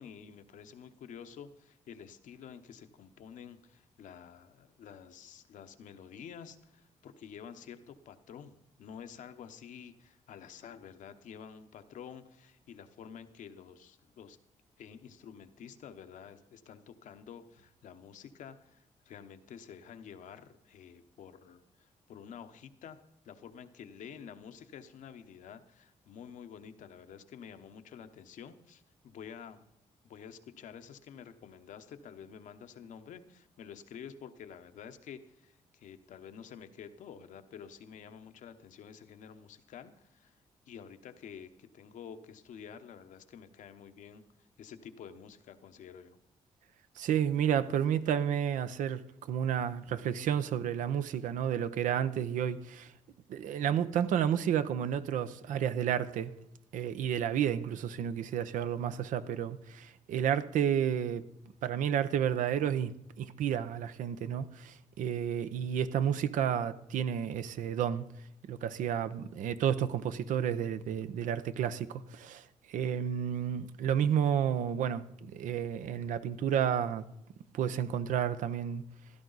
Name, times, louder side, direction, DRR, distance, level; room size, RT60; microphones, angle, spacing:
voice 1, 0.0-14.4 14.8-23.0 23.2-29.7 30.0-40.4 40.7-44.2 44.6-46.2, left 7 dB, 80° left, 1.0 m, -49 dB
voice 2, 47.0-52.9 53.3-56.3 56.7-61.2 61.6-62.9 63.2-68.1 68.4-77.0 77.5-78.8, right 9 dB, 85° right, 0.7 m, -31 dB
15.5 x 12.5 x 4.0 m
cardioid pair, 65°, 13 cm